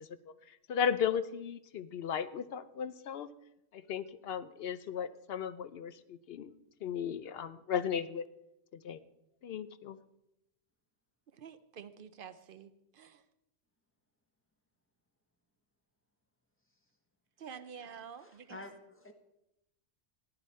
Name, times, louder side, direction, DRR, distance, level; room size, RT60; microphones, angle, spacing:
voice 1, 0.0-3.3 3.7-6.5 6.8-8.3 8.7-9.0 9.4-10.0, left 7 dB, 65° left, 14 dB, 0.7 m, -36 dB
voice 2, 11.3-13.2 17.4-18.6, right 7 dB, 55° right, 12 dB, 0.8 m, -49 dB
voice 3, 18.2-19.1, left 2 dB, 10° left, 5 dB, 1.2 m, -49 dB
14.5 x 10.0 x 4.3 m, 0.87 s
omnidirectional pair, 1.2 m